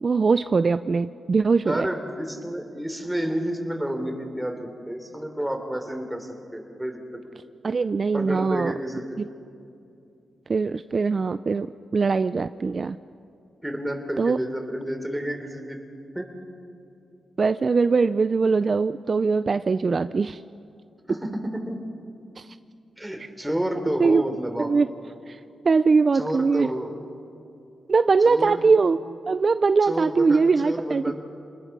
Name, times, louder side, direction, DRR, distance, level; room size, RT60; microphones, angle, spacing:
voice 1, 0.0-1.9 7.6-8.7 9.2-9.3 10.5-11.7 11.9-13.0 14.2-14.4 17.4-20.4 22.4-22.5 24.0-24.2 24.6-24.9 25.3-25.4 25.6-26.7 27.9-29.0 29.3-31.1, right 4 dB, 45° right, 12 dB, 0.4 m, -21 dB
voice 2, 1.6-7.0 7.3-7.4 8.1-9.2 13.6-15.8 16.1-16.3 21.1-21.8 23.0-24.7 26.1-26.9 28.2-28.7 29.8-31.1, equal, 5° right, 4 dB, 3.4 m, -30 dB
27.5 x 20.5 x 6.1 m, 2.6 s
cardioid pair, 75°, 0 cm